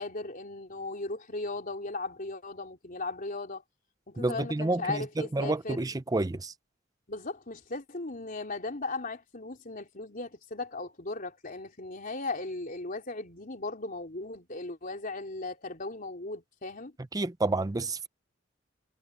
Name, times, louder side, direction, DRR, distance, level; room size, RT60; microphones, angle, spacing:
voice 1, 0.0-3.6 4.1-5.8 7.1-16.9, left 3 dB, 45° left, 3.7 m, -37 dB
voice 2, 4.2-6.5 17.1-18.1, right 2 dB, 20° right, 0.5 m, -29 dB
head